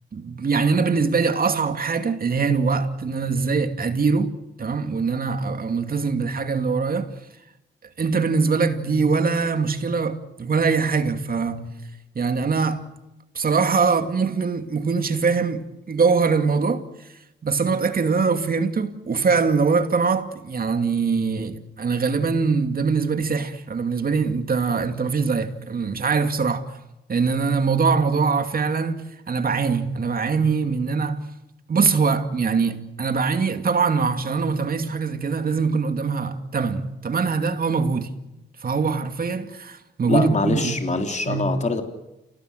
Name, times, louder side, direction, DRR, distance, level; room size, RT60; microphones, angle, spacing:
voice 1, 0.1-7.1 8.0-11.7 12.1-12.9 13.3-16.9 17.4-26.8 27.1-31.3 31.7-38.1 38.6-40.8 41.3-41.5, right 5 dB, 50° right, 2.6 m, -23 dB
voice 2, 40.1-41.8, left 3 dB, 40° left, 3.6 m, -24 dB
29.0 x 18.0 x 9.2 m
cardioid pair, 70°, 19 cm